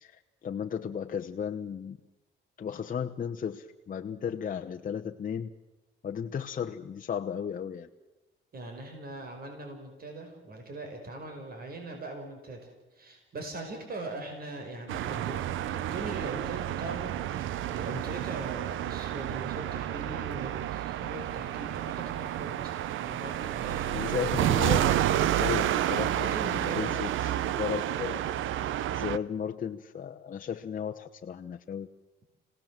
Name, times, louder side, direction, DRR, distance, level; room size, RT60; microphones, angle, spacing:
voice 1, 0.0-2.0 2.6-5.5 6.0-7.9 23.9-27.3 27.6-28.2 28.9-31.9, left 7 dB, 45° left, 4 dB, 1.0 m, -35 dB
voice 2, 8.5-12.6 12.9-24.3 26.3-27.0, right 2 dB, 50° right, 3 dB, 5.3 m, -41 dB
sound 1, 14.9-29.2, right 12 dB, 80° right, 0.8 m, -30 dB
27.5 x 18.5 x 7.6 m, 1.1 s
cardioid pair, 90°, 20 cm